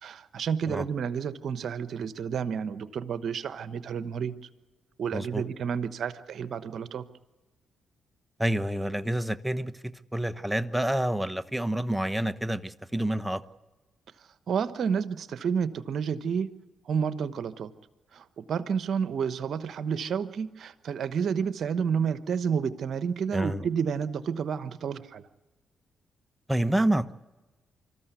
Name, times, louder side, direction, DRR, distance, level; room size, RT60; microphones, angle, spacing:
voice 1, 0.0-4.3 5.0-7.0 14.5-16.5 16.9-17.7 18.1-25.2, right 7 dB, 65° right, 13 dB, 1.1 m, -30 dB
voice 2, 5.1-5.4 8.4-9.7 10.1-13.4 23.3-23.7 26.5-27.1, right 1 dB, 10° right, 12 dB, 1.1 m, -28 dB
25.5 x 14.0 x 8.3 m, 1.2 s
supercardioid pair, 50°, 0 cm